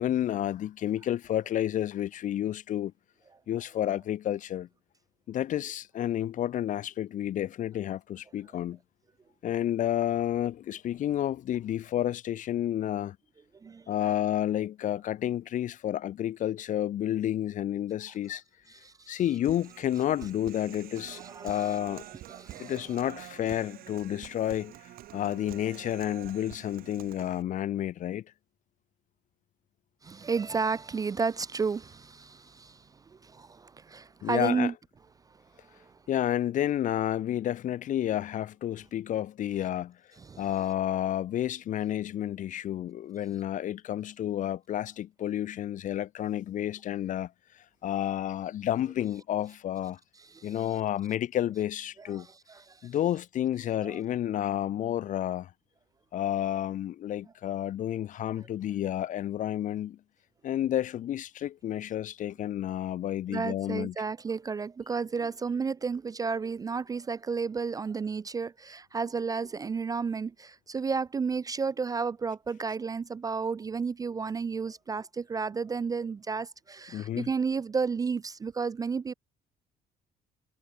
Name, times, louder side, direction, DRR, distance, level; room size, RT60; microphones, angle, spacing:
voice 1, 0.0-2.9 3.5-4.7 5.3-8.8 9.4-13.2 13.9-18.4 19.1-22.1 22.6-24.7 25.1-28.2 34.2-34.7 36.1-40.0 40.4-47.3 47.8-50.0 50.4-52.3 52.8-55.5 56.1-60.0 60.4-63.9 76.9-77.3, left 11 dB, 50° left, 0.5 m, -30 dB
voice 2, 13.6-14.2 18.7-19.2 21.1-21.8 22.3-22.7 30.0-34.7 35.7-35.9 40.2-40.4 50.2-50.7 52.0-52.9 53.8-54.0 63.3-79.1, right 5 dB, 20° right, 0.3 m, -32 dB
Human voice, 19.4-27.4, right 14 dB, 60° right, 0.7 m, -47 dB
cardioid pair, 110°, 17 cm